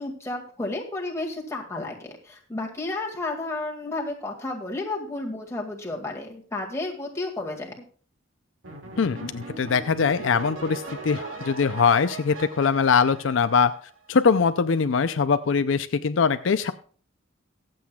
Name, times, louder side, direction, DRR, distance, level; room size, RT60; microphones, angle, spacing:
voice 1, 0.0-7.9, left 2 dB, 15° left, -1 dB, 2.1 m, -32 dB
sound 1, 8.6-14.1, right 3 dB, 80° right, 2.3 m, -39 dB
voice 2, 9.0-13.7 14.1-16.7, left 5 dB, 70° left, 10 dB, 0.5 m, -22 dB
22.5 x 7.7 x 2.3 m, 0.44 s
head